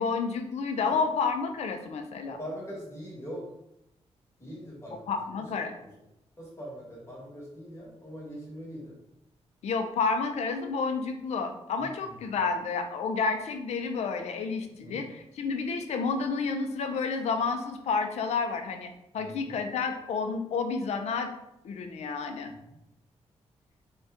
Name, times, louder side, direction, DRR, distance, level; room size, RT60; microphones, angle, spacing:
voice 1, 0.0-2.4 5.1-5.7 9.6-21.3 21.6-22.5, left 4 dB, 70° left, 6 dB, 0.4 m, -30 dB
voice 2, 2.2-3.5 4.4-5.0 5.4-5.5 6.4-9.0 11.8-12.1 14.8-15.0 19.2-19.5, equal, 25° left, -5 dB, 1.2 m, -42 dB
2.6 x 2.2 x 3.5 m, 0.84 s
wide cardioid pair, 130°, 12 cm